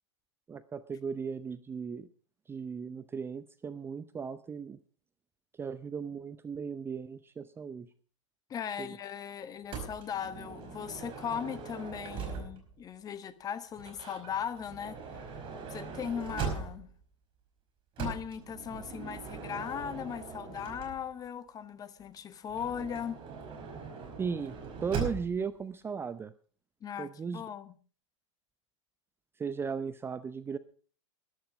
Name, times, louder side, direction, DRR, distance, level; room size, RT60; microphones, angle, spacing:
voice 1, 0.5-2.1 2.5-4.8 5.6-7.9 8.8-8.9 24.2-26.3 27.0-27.4 29.4-30.6, right 6 dB, 15° right, 0.6 m, -36 dB
voice 2, 8.5-15.4 15.7-16.9 18.0-23.2 26.8-27.7, left 8 dB, 25° left, 1.1 m, -38 dB
Motor vehicle (road) / Sliding door, 9.7-12.8 13.8-17.0 18.0-21.3 22.5-25.5, right 5 dB, 35° right, 4.9 m, -40 dB
13.5 x 11.5 x 5.1 m
figure-of-eight pair, 100°, 16 cm